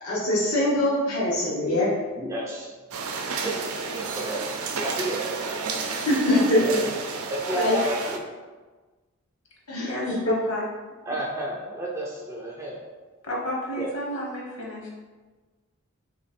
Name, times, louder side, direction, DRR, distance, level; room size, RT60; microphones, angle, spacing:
voice 1, 0.0-1.9 6.1-6.9 7.5-7.7 9.7-10.1, left 1 dB, 80° left, -8 dB, 1.0 m, -23 dB
voice 2, 0.8-1.2 2.2-2.7 3.3-4.4 4.7-5.7 6.6-6.8 7.3-8.2 11.0-12.8 13.8-13.9, right 1 dB, 15° right, -4 dB, 0.4 m, -32 dB
sound 1, 2.9-8.2, right 4 dB, 80° right, 0.5 m, -31 dB
voice 3, 9.8-10.7 13.2-14.9, left 1 dB, 55° left, -3 dB, 1.1 m, -31 dB
3.3 x 3.1 x 4.2 m, 1.3 s
head